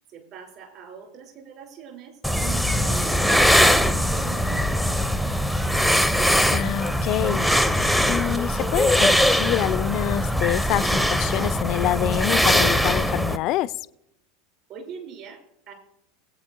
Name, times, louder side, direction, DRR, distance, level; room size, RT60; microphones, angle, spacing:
voice 1, 0.1-4.9 14.7-15.7, right 6 dB, 45° right, 3.2 m, -43 dB
sound 1, 2.2-13.4, equal, 5° right, 0.6 m, -21 dB
voice 2, 6.5-13.7, left 13 dB, 45° left, 0.3 m, -26 dB
20.0 x 8.4 x 2.6 m
figure-of-eight pair, 80°, 0 cm